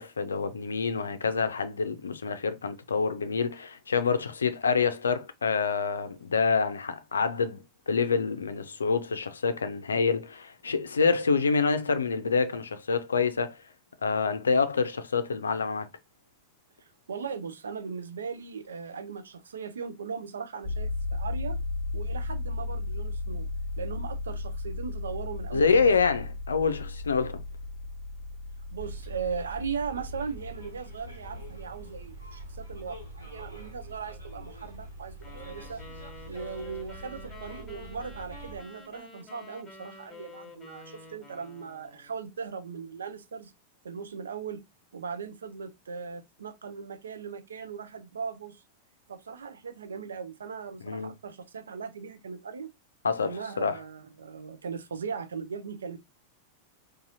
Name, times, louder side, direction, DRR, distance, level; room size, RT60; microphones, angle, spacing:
voice 1, 0.0-13.6 14.0-15.9 25.5-27.4 50.8-51.1 53.0-53.8, left 5 dB, 70° left, 0.5 m, -27 dB
voice 2, 16.8-21.6 21.9-23.5 23.8-25.9 28.7-35.8 36.3-43.5 43.8-44.6 44.9-48.6 49.1-52.7 53.2-56.0, right 5 dB, 70° right, 0.5 m, -38 dB
sound 1, 20.6-35.4, left 2 dB, 45° right, 1.3 m, -36 dB
Bus, 28.8-38.6, right 2 dB, 90° right, 1.2 m, -44 dB
sound 2, 35.2-42.2, left 2 dB, 15° left, 1.3 m, -49 dB
4.1 x 2.6 x 2.6 m
figure-of-eight pair, 90°, 0 cm